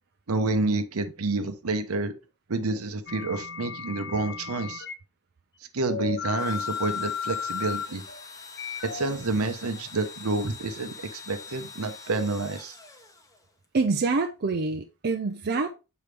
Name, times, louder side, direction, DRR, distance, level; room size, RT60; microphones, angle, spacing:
voice 1, 0.3-2.1 2.5-4.8 5.7-8.0 8.8-12.7, right 3 dB, 70° right, 0.9 m, -29 dB
sound 1, 3.1-4.9 5.9-9.9, left 7 dB, 50° left, 0.6 m, -34 dB
Engine / Drill, 6.3-13.6, left 4 dB, 15° left, 1.0 m, -45 dB
voice 2, 13.7-15.7, right 3 dB, 45° right, 0.5 m, -26 dB
6.9 x 4.8 x 3.3 m
head